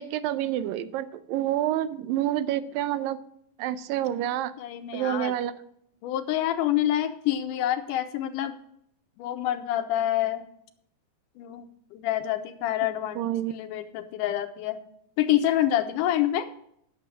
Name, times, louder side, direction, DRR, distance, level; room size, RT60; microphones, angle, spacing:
voice 1, 0.0-3.2 3.6-4.5 4.9-5.5 13.2-13.5, right 12 dB, 85° right, 13 dB, 2.3 m, -28 dB
voice 2, 4.6-5.3 6.0-8.5 9.2-10.4 11.4-11.7 11.9-14.8 15.2-16.5, left 12 dB, 80° left, 10 dB, 2.1 m, -27 dB
11.0 x 6.9 x 6.3 m, 0.70 s
omnidirectional pair, 4.0 m